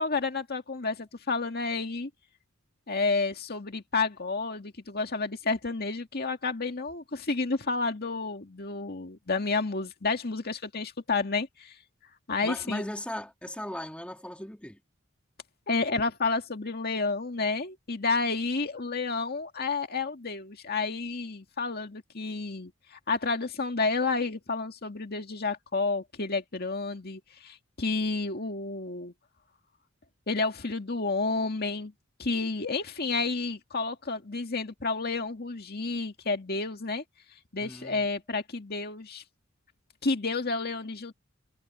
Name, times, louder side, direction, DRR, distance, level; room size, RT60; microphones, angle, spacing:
voice 1, 0.0-2.1 2.9-11.8 12.3-12.8 15.7-29.1 30.3-31.9 32.2-37.0 37.5-39.2 40.0-41.1, left 3 dB, 50° left, 2.0 m, -30 dB
voice 2, 12.4-14.8 37.6-38.1, left 1 dB, 5° left, 2.2 m, -38 dB
head